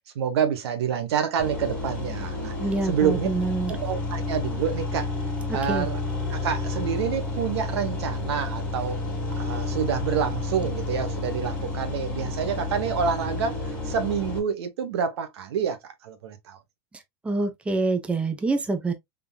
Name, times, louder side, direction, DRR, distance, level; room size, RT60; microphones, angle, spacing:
voice 1, 0.1-2.5 2.8-3.3 3.7-5.1 5.5-6.0 6.3-9.0 9.3-13.6 13.8-16.6, right 7 dB, 80° right, 1.0 m, -27 dB
sound 1, 1.4-14.4, left 2 dB, 10° left, 1.9 m, -30 dB
voice 2, 2.6-3.7 5.5-5.9 17.2-18.9, right 3 dB, 10° right, 0.6 m, -26 dB
3.7 x 3.5 x 2.2 m
supercardioid pair, 130°, 14 cm